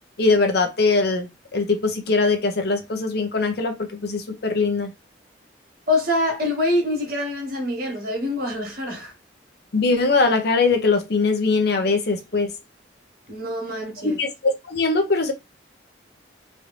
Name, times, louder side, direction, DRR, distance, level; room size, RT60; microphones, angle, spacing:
voice 1, 0.2-4.9 9.7-12.5 14.0-15.3, left 3 dB, 55° left, 0.7 m, -21 dB
voice 2, 5.9-9.1 13.3-14.2, left 1 dB, 50° right, 1.3 m, -25 dB
3.1 x 2.6 x 3.1 m
head